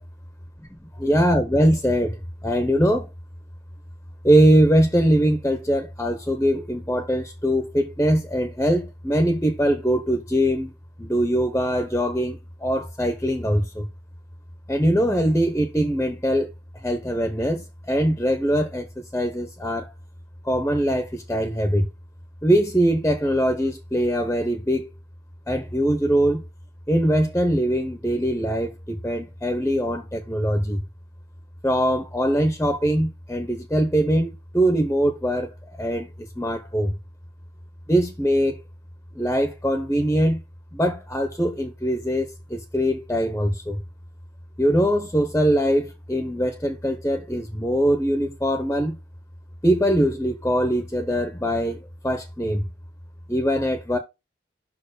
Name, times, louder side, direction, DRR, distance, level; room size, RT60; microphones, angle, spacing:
voice 1, 1.0-3.1 4.2-10.7 11.0-13.9 14.7-19.9 20.4-21.9 22.4-24.9 25.5-26.4 26.9-30.8 31.6-36.9 37.9-38.6 39.1-40.4 40.7-43.8 44.6-49.0 49.6-52.7 53.3-54.0, equal, 10° left, 0.9 m, -22 dB
6.0 x 4.5 x 4.9 m
head